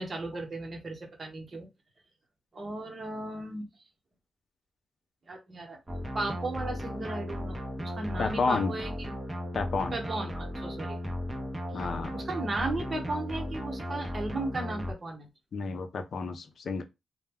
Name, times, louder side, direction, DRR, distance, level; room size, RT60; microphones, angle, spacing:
voice 1, 0.0-1.7 2.5-3.7 5.3-5.8 6.1-9.1 9.9-11.0 11.7-11.8 12.1-15.3, right 2 dB, 40° right, 1.0 m, -35 dB
sound 1, 5.9-14.9, left 1 dB, 15° right, 0.7 m, -36 dB
voice 2, 8.2-8.7 9.5-10.0 11.7-12.2 15.5-16.8, left 4 dB, 65° left, 0.5 m, -31 dB
2.2 x 2.1 x 3.4 m
cardioid pair, 95°, 0 cm